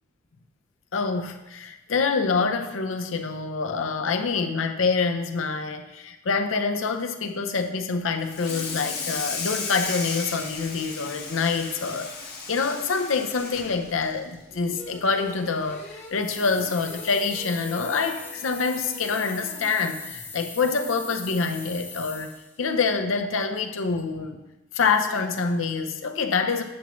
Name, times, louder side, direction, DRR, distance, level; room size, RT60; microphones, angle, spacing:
voice 1, 0.9-12.1 12.5-24.4 24.7-26.6, left 4 dB, 80° left, 6 dB, 0.6 m, -26 dB
Water tap faucet / Sink (filling or washing), 8.2-14.9 15.3-15.5 15.9-16.0 16.4-16.5 17.6-17.7 18.2-18.4, left 4 dB, 55° left, 1.3 m, -35 dB
sound 1, 14.8-20.3, left 1 dB, 35° left, 1.4 m, -45 dB
sound 2, 16.1-22.6, left 4 dB, 10° left, 0.4 m, -40 dB
7.2 x 7.1 x 3.1 m, 1.0 s
head